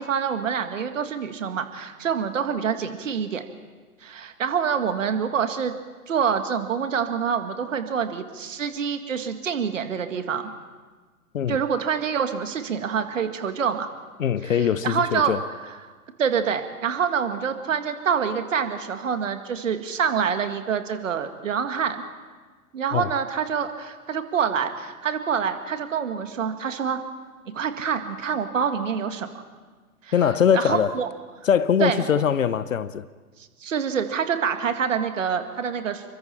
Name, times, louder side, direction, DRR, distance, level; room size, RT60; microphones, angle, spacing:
voice 1, 0.0-3.4 4.0-5.7 6.1-10.4 11.5-13.9 14.4-15.3 16.2-22.0 22.7-27.0 27.5-29.3 30.0-30.1 30.5-31.1 31.8-32.0 33.6-36.0, right 7 dB, 55° right, 2.0 m, -26 dB
voice 2, 14.2-15.4 22.9-23.1 30.1-31.0 31.4-33.1, left 8 dB, 55° left, 0.8 m, -22 dB
27.5 x 23.5 x 4.4 m
figure-of-eight pair, 115°, 46 cm